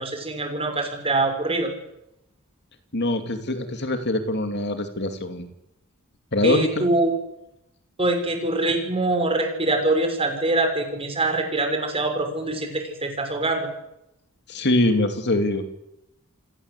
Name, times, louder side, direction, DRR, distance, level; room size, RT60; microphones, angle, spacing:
voice 1, 0.0-1.7 6.4-7.1 8.0-13.7, right 2 dB, 25° right, 5 dB, 6.2 m, -24 dB
voice 2, 2.9-5.5 6.3-6.9 14.5-15.7, left 1 dB, 50° left, 7 dB, 2.8 m, -23 dB
29.0 x 19.5 x 8.4 m, 0.85 s
head